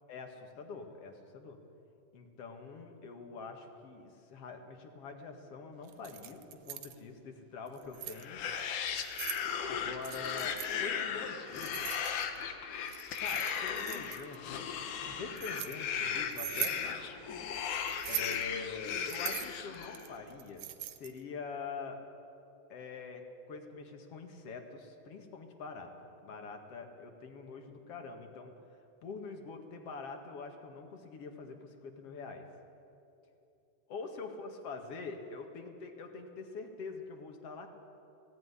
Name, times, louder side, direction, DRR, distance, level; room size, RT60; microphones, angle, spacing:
voice 1, 0.1-1.6 2.1-8.4 9.7-11.9 13.2-14.6 15.0-17.1 18.1-22.0 22.7-25.9 26.2-28.5 29.0-32.4 33.9-37.7, left 4 dB, 55° left, 4 dB, 2.6 m, -45 dB
Keys jangling, 5.9-7.0 7.7-8.2 8.9-9.4 10.0-10.7 11.6-12.4 12.9-14.4 15.0-15.7 16.3-16.8 17.9-18.4 19.1-21.2, right 13 dB, 75° right, 2.1 m, -41 dB
sound 1, 8.2-20.2, left 7 dB, 85° left, 2.7 m, -37 dB
19.0 x 17.0 x 9.8 m, 2.8 s
omnidirectional pair, 3.5 m